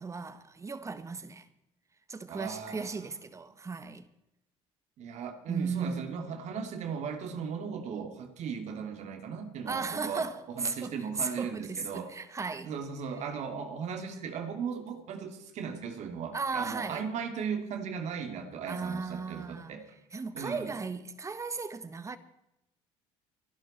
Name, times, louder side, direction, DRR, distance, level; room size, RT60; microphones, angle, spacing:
voice 1, 0.0-1.5 2.1-4.1 5.5-6.3 9.7-12.7 16.3-17.0 18.7-19.8 20.1-22.2, right 4 dB, 25° right, 1.5 m, -36 dB
voice 2, 2.3-3.0 5.0-12.1 12.6-19.8 20.3-20.7, right 6 dB, 60° right, 2.8 m, -37 dB
26.0 x 11.5 x 4.4 m
supercardioid pair, 100°, 13 cm